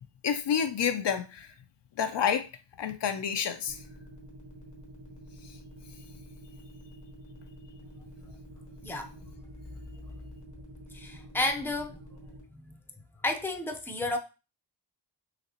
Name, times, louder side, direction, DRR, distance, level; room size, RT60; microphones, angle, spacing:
voice 1, 0.2-1.5 2.0-2.5 2.8-3.8, left 7 dB, 65° left, 0.6 m, -29 dB
sound 1, 3.7-12.4, right 1 dB, 40° right, 1.5 m, -48 dB
voice 2, 10.9-12.0 12.6-12.8 13.2-14.2, left 2 dB, 5° left, 0.7 m, -31 dB
4.0 x 2.9 x 2.9 m
cardioid pair, 65°, 45 cm